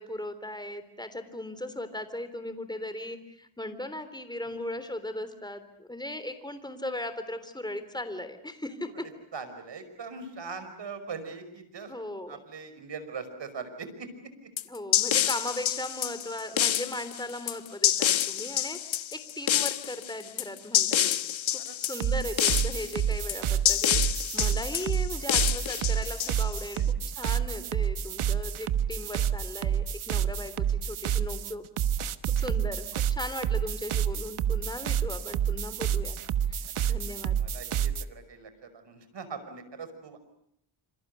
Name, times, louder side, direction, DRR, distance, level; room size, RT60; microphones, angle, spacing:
voice 1, 0.0-9.0 11.9-12.4 14.7-21.3 21.5-31.6 32.4-36.2 36.5-37.4, left 1 dB, 10° left, 11 dB, 3.4 m, -38 dB
voice 2, 4.4-4.8 8.9-9.0 9.3-11.9 12.3-14.1 14.4-14.5 21.6-21.8 24.4-24.6 26.8-26.9 36.6-36.7 37.0-40.2, right 5 dB, 60° right, 10 dB, 5.6 m, -41 dB
sound 1, 14.6-26.8, left 11 dB, 70° left, 1.2 m, -27 dB
sound 2, 21.9-38.0, right 9 dB, 85° right, 1.3 m, -29 dB
27.0 x 27.0 x 6.9 m, 0.71 s
cardioid pair, 100°, 48 cm